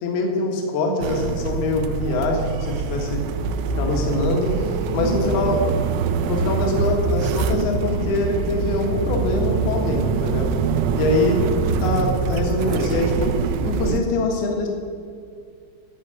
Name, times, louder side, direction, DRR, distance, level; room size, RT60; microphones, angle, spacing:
voice 1, 0.0-3.2 3.8-4.7 4.9-5.6 6.3-10.5 11.0-11.4 11.8-13.3 13.6-14.7, left 2 dB, 60° left, 1 dB, 2.9 m, -23 dB
sound 1, 1.0-14.0, right 5 dB, 80° right, 2.8 m, -24 dB
13.0 x 5.5 x 8.8 m, 2.3 s
omnidirectional pair, 5.9 m